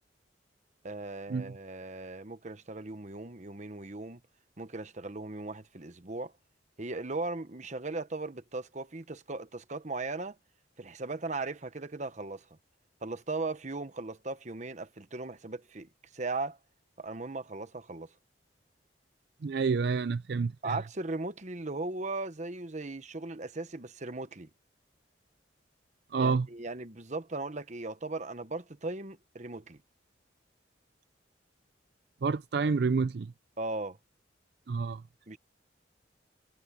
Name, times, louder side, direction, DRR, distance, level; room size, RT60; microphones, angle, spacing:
voice 1, 0.8-4.2 4.6-6.3 6.8-10.4 10.8-12.5 13.0-16.6 17.0-18.1 20.6-24.5 26.2-29.8 33.6-34.0 35.3-35.4, right 3 dB, 40° right, 1.1 m, -38 dB
voice 2, 19.4-20.8 26.1-26.5 32.2-33.3 34.7-35.0, right 4 dB, 60° right, 0.4 m, -28 dB
head